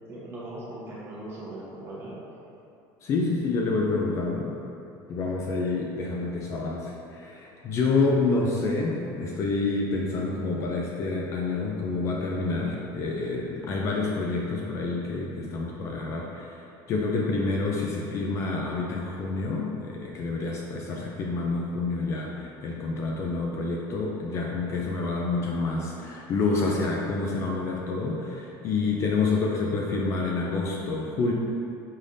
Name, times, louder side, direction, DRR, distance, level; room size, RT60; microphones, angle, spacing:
voice 1, 0.1-2.2, right 1 dB, 25° right, -7 dB, 0.9 m, -39 dB
voice 2, 3.0-4.5 5.1-16.6 16.9-31.3, left 3 dB, 30° left, -2 dB, 0.3 m, -28 dB
5.4 x 3.3 x 2.5 m, 2.7 s
cardioid pair, 175°, 9 cm